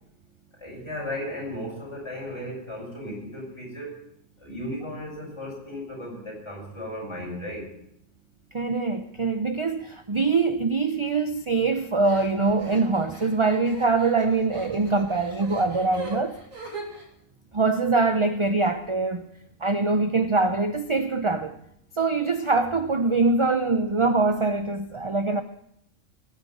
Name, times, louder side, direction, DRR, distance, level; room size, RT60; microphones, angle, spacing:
voice 1, 0.6-3.9 4.4-7.6, left 1 dB, 20° left, 6.4 m, -35 dB
voice 2, 8.5-16.3 17.5-19.3 19.6-21.5 22.0-25.4, right 3 dB, 35° right, 0.5 m, -23 dB
sound 1, 12.0-17.1, right 1 dB, 85° right, 2.9 m, -40 dB
20.5 x 8.7 x 5.3 m
omnidirectional pair, 1.4 m